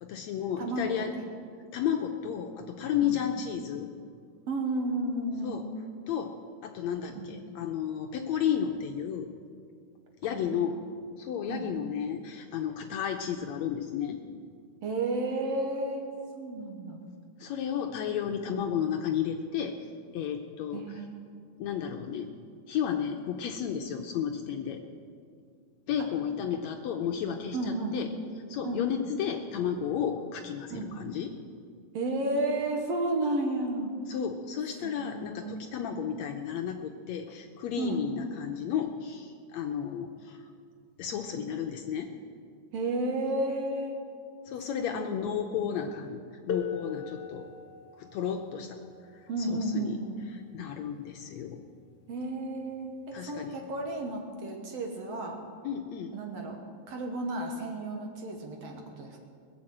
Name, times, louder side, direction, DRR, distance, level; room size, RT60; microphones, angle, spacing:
voice 1, 0.0-1.1 1.7-3.9 5.4-5.6 6.1-6.3 6.6-9.3 10.2-10.8 11.2-14.2 17.4-19.8 20.1-21.0 21.6-22.3 22.7-24.8 25.9-28.1 28.5-31.3 34.1-40.4 41.0-42.1 44.5-46.2 46.5-47.4 48.0-48.8 49.4-50.0 50.3-51.6 53.1-53.6 55.6-56.1, left 8 dB, 75° left, 4 dB, 1.7 m, -32 dB
voice 2, 0.6-1.3 3.0-3.2 4.5-5.6 7.1-7.3 10.3-10.7 11.5-11.7 14.8-16.1 16.4-17.0 18.5-18.6 20.7-21.3 27.5-28.0 28.6-28.9 30.7-31.0 31.9-33.9 34.8-35.6 37.8-38.0 42.7-44.0 44.9-45.3 49.3-50.2 52.1-55.4 56.1-56.6 56.9-59.3, right 2 dB, 60° right, 2 dB, 2.1 m, -32 dB
sound 1, 46.5-51.9 53.0-53.1 53.9-54.1, left 7 dB, 55° left, 1.2 m, -41 dB
21.0 x 7.3 x 7.7 m, 2.2 s
omnidirectional pair, 3.7 m